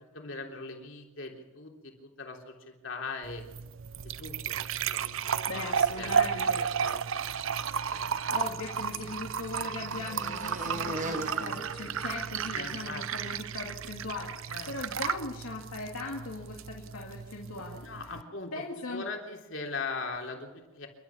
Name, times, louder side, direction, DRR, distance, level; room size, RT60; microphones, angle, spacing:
voice 1, 0.1-3.5 4.2-4.5 4.9-7.4 8.0-8.1 12.3-13.3 14.5-14.7 17.8-18.5 18.9-20.9, left 3 dB, 60° left, 2 dB, 3.6 m, -40 dB
sound 1, 3.2-18.2, right 7 dB, 65° right, 0.6 m, -33 dB
voice 2, 5.5-6.6 8.3-17.8 18.5-19.1, left 3 dB, 75° left, -1 dB, 2.5 m, -39 dB
sound 2, 8.1-12.8, right 1 dB, 35° right, 1.6 m, -41 dB
28.5 x 12.5 x 7.2 m, 1.2 s
head